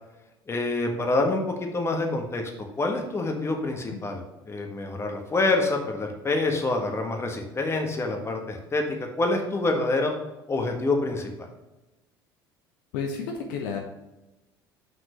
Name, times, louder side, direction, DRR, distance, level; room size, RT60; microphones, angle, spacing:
voice 1, 0.5-2.5 2.8-10.1 10.5-11.5, left 2 dB, 20° left, 3 dB, 1.5 m, -27 dB
voice 2, 12.9-13.8, left 5 dB, 60° left, 2 dB, 1.0 m, -31 dB
7.5 x 6.0 x 3.1 m, 0.99 s
figure-of-eight pair, 65°, 12 cm